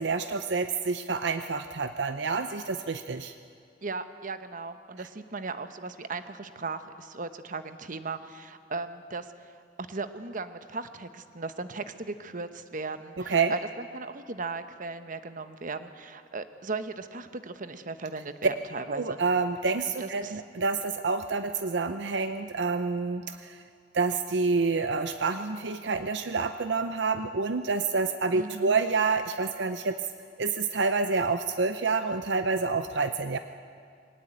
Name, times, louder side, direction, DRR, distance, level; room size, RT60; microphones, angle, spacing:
voice 1, 0.0-3.3 13.3-13.5 18.9-23.6 23.9-30.0 30.4-33.4, right 4 dB, 70° right, 9 dB, 0.7 m, -28 dB
voice 2, 3.8-9.3 9.9-19.2 20.0-20.4 28.3-28.8, right 3 dB, 45° right, 10 dB, 1.0 m, -37 dB
22.0 x 18.5 x 8.8 m, 2.2 s
head